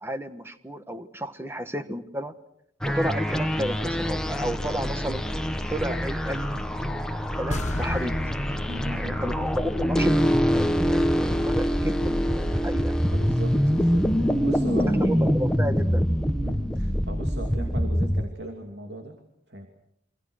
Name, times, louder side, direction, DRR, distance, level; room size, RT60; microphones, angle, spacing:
voice 1, 0.0-2.3 2.8-5.2 5.7-7.1 7.4-8.2 8.9-10.1 10.5-12.9 14.7-16.1, equal, 15° right, 10 dB, 1.3 m, -32 dB
sound 1, 2.8-18.2, equal, 5° left, 1.2 m, -25 dB
sound 2, 7.5-10.7 11.0-11.1, left 1 dB, 40° left, 0.9 m, -34 dB
voice 2, 8.7-9.2 13.1-15.4 16.4-19.2 19.5-19.7, right 1 dB, 65° right, 4 dB, 2.8 m, -38 dB
28.0 x 25.0 x 6.4 m, 0.74 s
head